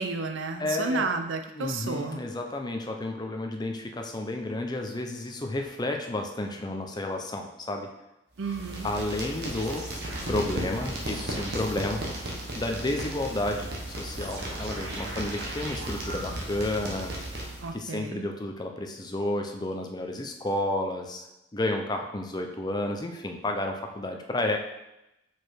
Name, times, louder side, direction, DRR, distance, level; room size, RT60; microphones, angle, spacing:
voice 1, 0.0-2.2 8.4-8.9 17.6-18.3, right 4 dB, 80° right, 6 dB, 0.6 m, -32 dB
voice 2, 0.6-1.0 1.6-7.9 8.8-9.9 10.3-12.3 12.5-17.1 17.7-21.3 21.5-24.6, left 1 dB, 20° left, 3 dB, 0.6 m, -31 dB
sound 1, 8.4-17.8, right 1 dB, 55° right, 1.2 m, -35 dB
4.8 x 4.6 x 4.5 m, 0.91 s
head